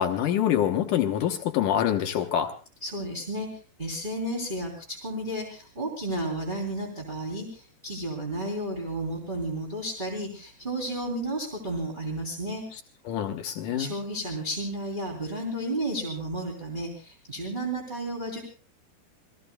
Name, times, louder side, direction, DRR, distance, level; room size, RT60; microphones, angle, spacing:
voice 1, 0.0-2.5 13.1-13.9, left 10 dB, 75° left, 5 dB, 1.9 m, -25 dB
voice 2, 2.8-3.5 3.8-12.6 13.8-18.4, right 1 dB, 15° right, -1 dB, 2.7 m, -32 dB
28.5 x 19.5 x 2.3 m, 0.37 s
omnidirectional pair, 4.9 m